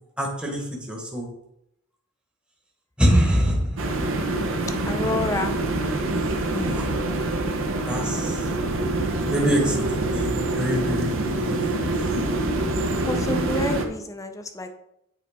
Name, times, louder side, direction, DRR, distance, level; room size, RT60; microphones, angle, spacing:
voice 1, 0.2-1.3 3.0-3.8 6.5-6.9 7.9-8.5 9.2-12.2, equal, 5° right, -1 dB, 1.1 m, -25 dB
sound 1, 3.8-13.9, right 2 dB, 65° right, 0.8 m, -25 dB
voice 2, 4.8-5.5 13.1-14.7, left 2 dB, 15° left, 7 dB, 0.5 m, -28 dB
8.6 x 4.4 x 3.6 m, 0.81 s
head